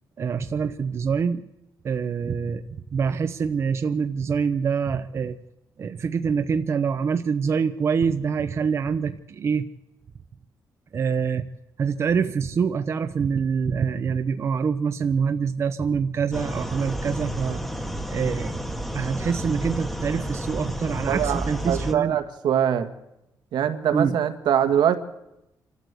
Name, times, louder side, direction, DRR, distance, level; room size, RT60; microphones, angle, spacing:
voice 1, 0.2-1.4 1.8-5.4 5.8-9.7 10.9-11.4 11.8-17.6 18.1-18.5 18.9-22.2 23.9-24.1, right 6 dB, 40° right, 9 dB, 0.8 m, -25 dB
sound 1, 16.3-21.9, right 1 dB, 5° left, 1.3 m, -31 dB
voice 2, 21.1-22.9 23.5-25.0, right 9 dB, 80° right, 8 dB, 1.8 m, -23 dB
26.5 x 13.0 x 8.3 m, 0.89 s
wide cardioid pair, 165°, 7 cm